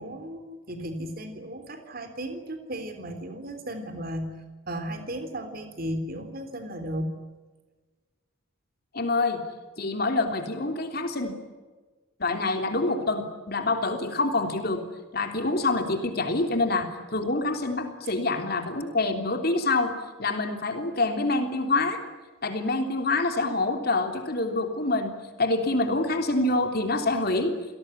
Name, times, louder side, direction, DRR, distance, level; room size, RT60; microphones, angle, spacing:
voice 1, 0.0-7.2, equal, 45° right, 8 dB, 3.6 m, -35 dB
voice 2, 8.9-9.4 9.8-11.3 12.2-14.8 15.1-22.0 22.4-25.1 25.4-27.5, left 2 dB, 45° left, 5 dB, 3.3 m, -26 dB
28.5 x 18.5 x 9.8 m, 1.3 s
head